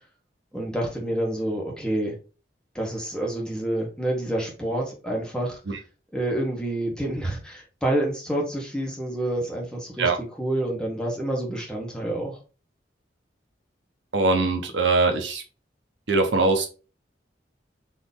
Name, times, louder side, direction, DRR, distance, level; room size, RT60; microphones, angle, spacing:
voice 1, 0.5-2.1 2.7-5.6 6.1-10.1 10.4-12.4, right 1 dB, 5° left, -1 dB, 1.3 m, -28 dB
voice 2, 14.1-15.4 16.1-16.7, right 3 dB, 80° right, 5 dB, 1.0 m, -22 dB
4.2 x 3.1 x 3.7 m, 0.33 s
head